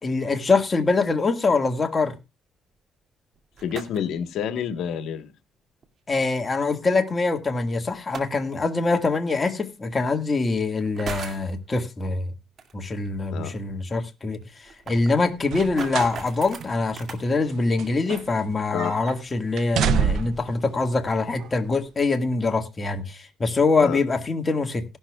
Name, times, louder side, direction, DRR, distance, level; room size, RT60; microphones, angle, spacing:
voice 1, 0.0-2.2 6.1-12.3 12.7-14.4 14.9-24.8, left 3 dB, 30° left, 1.7 m, -24 dB
sound 1, 3.4-4.2 5.8-5.9 7.9-8.5 9.7-9.8 10.8-11.5 12.6-12.7 13.0-13.1 13.5-13.6 13.8-13.9 14.4-17.2, right 5 dB, 55° right, 2.3 m, -37 dB
voice 2, 3.6-5.3 13.3-13.5 18.7-18.9 23.8-24.0, left 8 dB, 80° left, 1.3 m, -28 dB
sound 2, 15.4-16.2 16.6-16.7 17.5-18.5 18.8-19.2 19.6-20.5 21.4-21.5, right 7 dB, 80° right, 0.6 m, -26 dB
17.5 x 11.5 x 2.3 m
cardioid pair, 90°, 0 cm